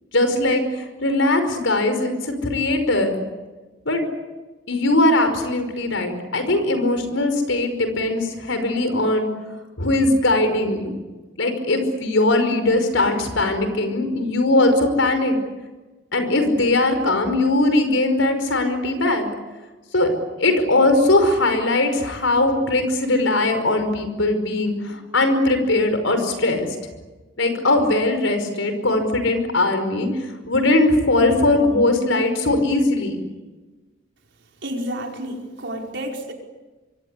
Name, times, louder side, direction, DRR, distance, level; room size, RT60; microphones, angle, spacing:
voice 1, 0.1-3.1 3.8-4.0 4.7-9.3 9.8-11.0 11.4-15.4 16.1-19.3 19.9-20.1 20.4-26.7 27.4-30.1 30.5-33.2, left 2 dB, 85° left, 8 dB, 5.3 m, -20 dB
voice 2, 34.6-36.3, equal, 60° right, 1 dB, 5.0 m, -30 dB
26.0 x 24.0 x 8.4 m, 1.2 s
head